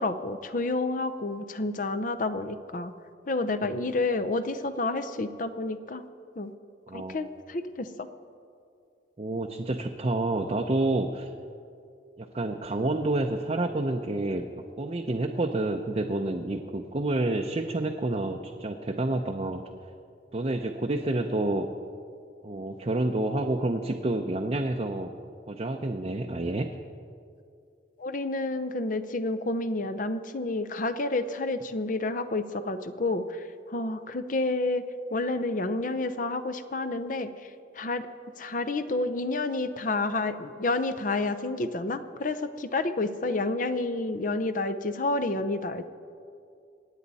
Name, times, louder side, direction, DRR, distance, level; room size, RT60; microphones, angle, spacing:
voice 1, 0.0-2.9 3.3-6.0 6.4-6.5 6.9-8.1 28.0-34.8 35.1-37.5 37.8-38.1 38.4-45.9, left 2 dB, 50° left, 11 dB, 0.7 m, -29 dB
voice 2, 9.2-11.3 12.2-14.4 14.8-19.6 20.3-21.7 22.4-25.1 25.5-26.7, right 2 dB, 35° right, 2 dB, 0.6 m, -29 dB
25.0 x 9.3 x 4.1 m, 2.4 s
head